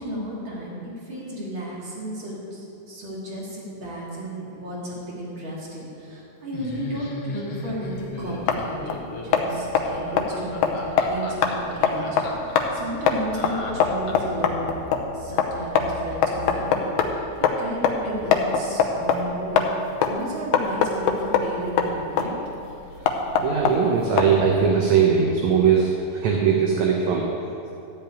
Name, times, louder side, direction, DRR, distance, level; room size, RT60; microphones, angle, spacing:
voice 1, 0.0-12.1 12.4-14.7 15.1-17.3 17.6-19.6 20.0-22.4, equal, 35° right, -6 dB, 3.2 m, -33 dB
Laughter, 6.5-14.4, left 3 dB, 55° left, 1.6 m, -36 dB
sound 1, 7.9-24.7, left 6 dB, 80° left, 1.5 m, -24 dB
voice 2, 22.9-27.7, right 6 dB, 70° right, 0 dB, 2.0 m, -21 dB
13.5 x 5.4 x 9.0 m, 2.8 s
omnidirectional pair, 4.1 m